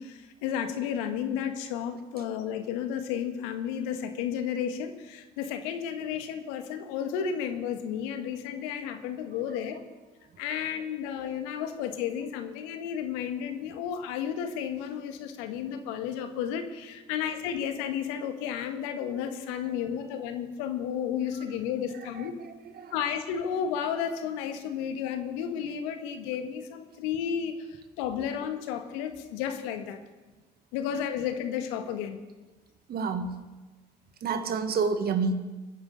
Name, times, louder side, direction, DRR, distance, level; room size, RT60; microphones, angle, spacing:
voice 1, 0.0-9.8 10.4-22.3 22.9-30.0 30.7-32.2, left 8 dB, 75° left, 7 dB, 1.5 m, -32 dB
voice 2, 22.2-22.9 32.9-33.4 34.2-35.3, right 5 dB, 50° right, 8 dB, 1.7 m, -29 dB
23.0 x 10.0 x 4.0 m, 1.2 s
hypercardioid pair, 60°, 21 cm